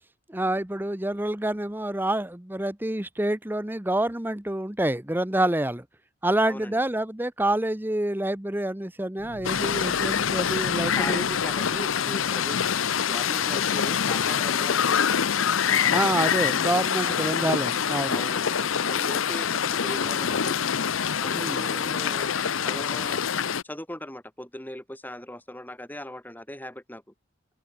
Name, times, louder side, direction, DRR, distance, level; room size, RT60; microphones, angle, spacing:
voice 1, 0.3-5.8 6.2-11.2 15.9-18.2 21.3-21.6, right 1 dB, 10° right, 0.9 m, -27 dB
voice 2, 6.4-6.8 10.9-15.4 17.0-17.3 18.1-20.6 21.2-23.2 23.6-27.0, left 1 dB, 10° left, 4.5 m, -39 dB
sound 1, 9.2-12.9, left 1 dB, 65° left, 2.8 m, -46 dB
sound 2, 9.4-23.6, left 7 dB, 80° left, 0.7 m, -25 dB
open air
head